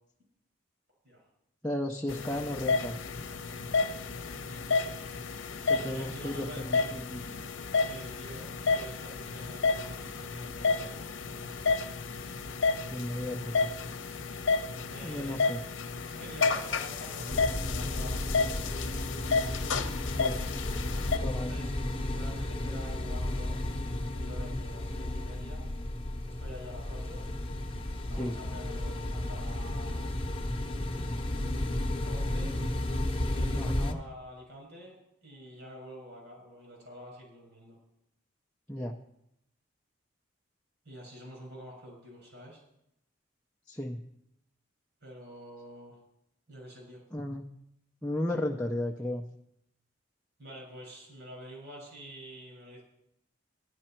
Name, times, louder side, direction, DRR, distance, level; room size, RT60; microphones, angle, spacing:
voice 1, 1.6-3.0 5.7-7.5 12.9-13.7 15.0-15.6 20.2-20.5 21.2-21.6 28.2-28.4 33.5-34.0 38.7-38.9 43.7-44.0 47.1-47.4 48.0-49.2, left 1 dB, 5° left, -2 dB, 0.6 m, -34 dB
sound 1, 2.1-21.2, left 4 dB, 75° left, 0.8 m, -31 dB
voice 2, 4.3-4.7 5.6-6.9 7.8-11.5 14.9-15.4 16.1-19.4 21.2-25.7 26.2-27.3 28.1-30.1 31.1-32.6 33.3-37.8 40.8-42.6 45.0-46.0 46.5-47.0 50.4-52.8, equal, 60° right, 0 dB, 6.0 m, -47 dB
sound 2, 17.3-33.9, left 1 dB, 30° left, 0.9 m, -33 dB
13.5 x 11.0 x 4.4 m, 0.79 s
head